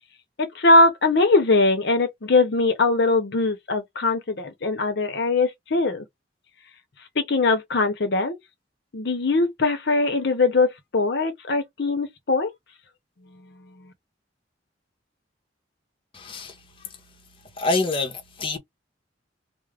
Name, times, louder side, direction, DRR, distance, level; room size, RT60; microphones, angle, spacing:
voice 1, 0.4-6.0 7.2-8.4 8.9-12.5, left 3 dB, 65° left, 0.7 m, -21 dB
voice 2, 16.1-16.9 17.6-18.6, left 3 dB, 30° left, 0.8 m, -27 dB
2.4 x 2.1 x 3.3 m
head